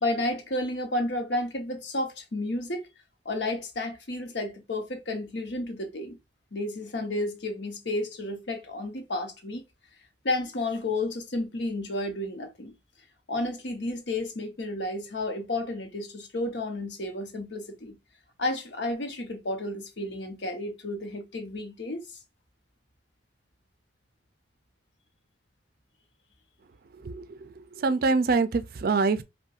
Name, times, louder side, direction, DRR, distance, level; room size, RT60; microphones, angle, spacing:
voice 1, 0.0-2.8 3.2-6.2 6.5-9.6 10.2-12.7 13.3-18.0 18.4-22.0, left 2 dB, 70° left, 0.9 m, -31 dB
voice 2, 27.0-29.2, right 4 dB, 50° right, 0.4 m, -25 dB
5.5 x 2.2 x 2.4 m
head